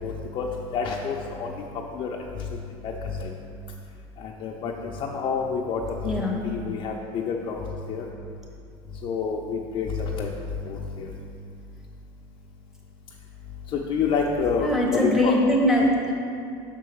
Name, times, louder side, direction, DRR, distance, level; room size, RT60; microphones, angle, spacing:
voice 1, 0.0-0.5 0.7-1.5 1.9-2.5 2.8-3.3 4.2-8.0 9.0-10.3 10.7-11.1 13.7-15.3, left 5 dB, 50° left, -2 dB, 0.6 m, -28 dB
voice 2, 6.0-6.4 14.6-16.1, left 1 dB, 5° right, -2 dB, 1.3 m, -22 dB
6.1 x 4.5 x 6.3 m, 2.5 s
cardioid pair, 120°, 11 cm